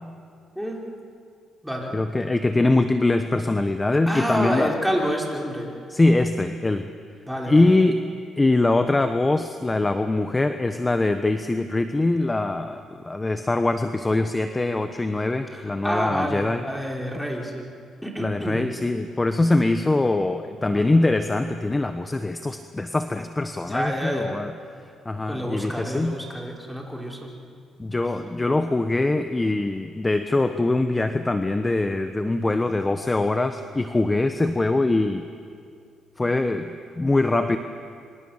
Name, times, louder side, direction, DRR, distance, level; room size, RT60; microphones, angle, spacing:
voice 1, 0.5-0.8 1.6-2.0 4.1-5.8 7.3-7.7 15.5-17.7 18.0-18.7 20.7-21.1 23.6-24.4 25.3-27.4, equal, ahead, -1 dB, 4.9 m, -28 dB
voice 2, 1.9-4.7 5.9-6.9 7.5-8.0 8.4-16.6 18.2-24.5 25.0-26.2 27.8-35.3 36.2-37.6, left 2 dB, 20° left, 8 dB, 1.1 m, -23 dB
26.5 x 25.5 x 7.4 m, 2.3 s
cardioid pair, 90°, 0 cm